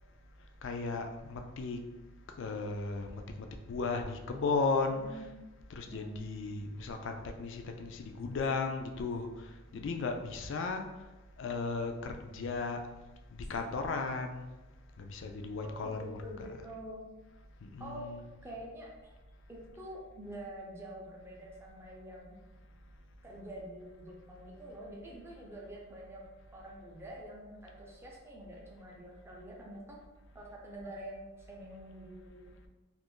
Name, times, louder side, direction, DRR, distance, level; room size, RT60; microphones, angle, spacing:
voice 1, 0.6-1.9 2.4-5.3 5.7-10.9 11.4-12.8 13.3-14.5 15.0-16.7 17.6-18.2, left 4 dB, 60° left, 5 dB, 0.4 m, -36 dB
voice 2, 5.0-5.4 5.9-6.2 10.0-10.1 15.6-17.1 17.8-18.1 18.4-19.1 19.5-22.4 23.2-26.2 26.5-30.0 30.3-32.5, right 1 dB, 10° right, -3 dB, 0.6 m, -46 dB
2.5 x 2.5 x 3.6 m, 1.1 s
head